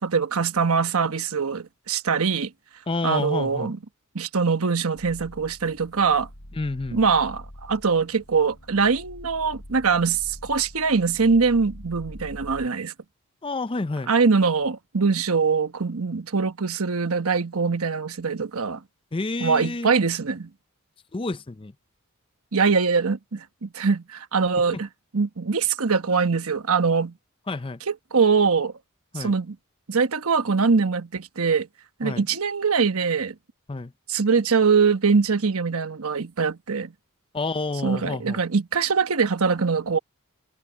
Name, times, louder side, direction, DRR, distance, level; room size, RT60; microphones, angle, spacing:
voice 1, 0.0-2.5 3.0-3.8 4.1-6.3 6.9-12.9 14.1-18.8 19.4-20.5 22.5-24.9 25.1-27.1 27.9-28.7 29.1-29.6 29.9-31.7 32.0-33.3 34.1-36.9 37.8-40.0, right 5 dB, 75° right, 1.1 m, -23 dB
voice 2, 2.9-3.7 6.5-7.0 13.4-14.1 19.1-19.9 21.1-21.7 24.7-24.8 27.5-27.8 29.1-29.3 32.0-32.2 33.7-33.9 37.3-38.4, left 3 dB, 25° left, 0.5 m, -29 dB
sound 1, 4.9-12.7, equal, 85° left, 7.9 m, -44 dB
head